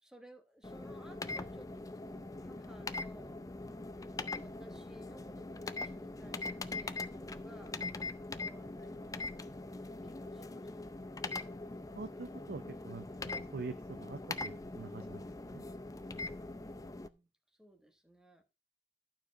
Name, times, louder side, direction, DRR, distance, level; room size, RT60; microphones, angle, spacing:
voice 1, 0.0-3.5 4.4-7.8 8.4-11.2 16.5-17.3 17.6-18.4, equal, 5° right, 1.3 m, -58 dB
sound 1, 0.6-17.1, left 2 dB, 20° left, 0.5 m, -42 dB
voice 2, 11.9-15.2 15.5-15.6, right 3 dB, 60° right, 0.6 m, -45 dB
12.0 x 4.7 x 5.1 m
head